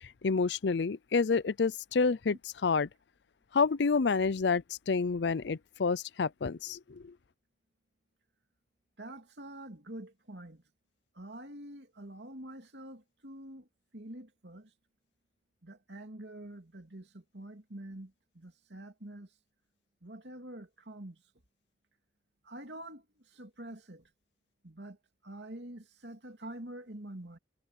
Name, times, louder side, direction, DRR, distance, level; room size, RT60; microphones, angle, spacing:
voice 1, 0.2-2.4 2.6-2.9 3.5-7.1, left 4 dB, 65° left, 0.5 m, -28 dB
voice 2, 9.0-10.6 11.1-13.7 13.9-14.7 15.6-19.3 20.0-21.2 22.4-24.1 24.6-25.0 25.2-27.4, right 1 dB, 65° right, 3.0 m, -46 dB
head